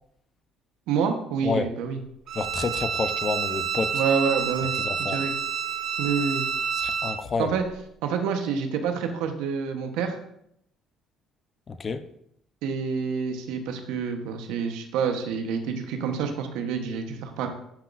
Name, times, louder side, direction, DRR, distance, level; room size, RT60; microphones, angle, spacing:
voice 1, 0.9-2.0 3.9-5.3 6.0-6.5 7.4-7.6 8.0-10.2 12.6-17.5, right 6 dB, 85° right, 5 dB, 1.0 m, -28 dB
voice 2, 2.3-4.0 4.8-5.2 6.7-7.5 11.7-12.0, left 4 dB, 40° left, 10 dB, 0.7 m, -29 dB
Bowed string instrument, 2.3-7.2, right 7 dB, 65° right, 1.2 m, -28 dB
10.0 x 5.9 x 2.6 m, 0.72 s
supercardioid pair, 80°, 0 cm